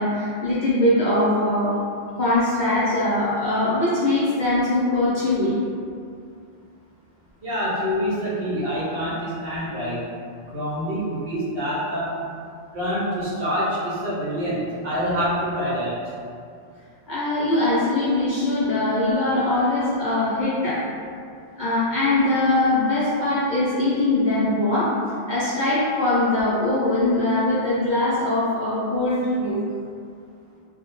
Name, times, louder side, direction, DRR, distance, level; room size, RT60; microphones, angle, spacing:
voice 1, 0.0-1.8 2.1-5.6 17.1-20.8 21.6-24.9 25.3-29.6, left 2 dB, 50° left, -11 dB, 0.6 m, -21 dB
voice 2, 7.4-10.0 10.5-12.2 12.7-16.0, equal, 60° right, -8 dB, 0.8 m, -26 dB
2.2 x 2.1 x 2.9 m, 2.3 s
omnidirectional pair, 1.2 m